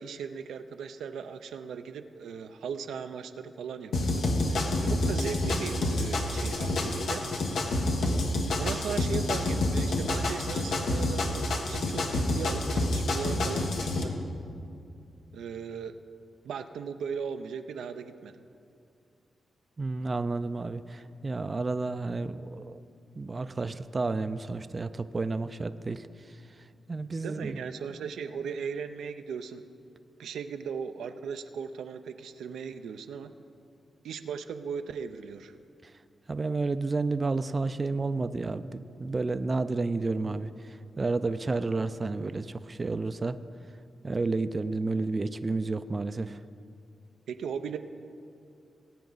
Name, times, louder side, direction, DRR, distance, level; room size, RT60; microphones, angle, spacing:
voice 1, 0.0-4.2 4.5-4.6 4.9-7.2 8.6-14.2 15.3-16.0 16.4-18.3 27.2-29.6 30.2-33.3 34.0-35.5 47.3-47.8, right 6 dB, 90° right, 8 dB, 0.5 m, -37 dB
sound 1, 3.9-14.0, left 2 dB, 80° left, 1.3 m, -28 dB
voice 2, 19.8-22.8 23.2-26.0 26.9-27.6 36.3-40.5 41.0-43.4 44.0-46.4, right 3 dB, 35° right, 12 dB, 0.4 m, -31 dB
19.5 x 8.5 x 4.0 m, 2.5 s
cardioid pair, 70°, 0 cm